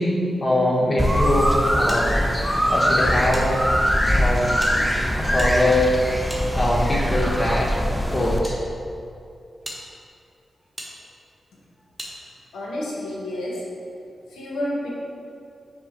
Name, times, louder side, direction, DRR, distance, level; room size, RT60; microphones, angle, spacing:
voice 1, 0.0-2.2 2.4-3.6 4.1-4.8 5.1-6.0 6.5-7.8 8.1-8.6, left 1 dB, 40° left, -4 dB, 1.1 m, -22 dB
sound 1, 1.0-8.4, equal, 5° left, 0.5 m, -22 dB
sound 2, 1.9-3.5 3.7-3.8 4.5-7.0 7.8-8.6 9.1-9.2 9.6-9.8 10.8-10.9 12.0-12.1, equal, 15° right, 1.0 m, -39 dB
voice 2, 12.5-13.7 14.3-14.9, left 1 dB, 90° left, -4 dB, 0.7 m, -29 dB
5.4 x 2.2 x 4.2 m, 2.5 s
supercardioid pair, 40°, 0 cm